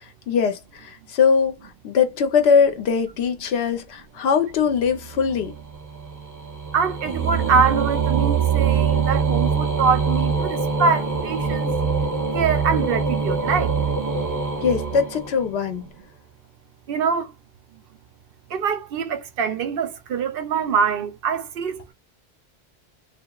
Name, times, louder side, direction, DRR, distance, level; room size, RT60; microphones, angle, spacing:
voice 1, 0.3-1.5 1.8-5.5 14.6-15.9, left 6 dB, 80° left, 0.9 m, -21 dB
sound 1, 4.8-15.7, right 5 dB, 25° right, 0.5 m, -24 dB
voice 2, 6.7-11.7 12.3-13.8 16.9-17.3 18.5-21.9, right 5 dB, 65° right, 0.7 m, -24 dB
2.8 x 2.4 x 2.2 m
omnidirectional pair, 1.1 m